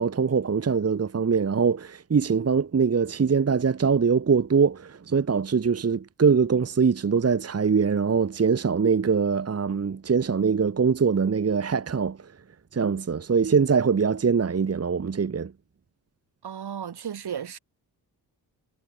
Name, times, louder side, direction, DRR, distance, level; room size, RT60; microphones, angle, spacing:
voice 1, 0.0-12.3 12.7-15.5, right 5 dB, 35° right, 1.3 m, -23 dB
voice 2, 16.4-17.6, right 8 dB, 70° right, 2.9 m, -34 dB
wide cardioid pair, 105°, 41 cm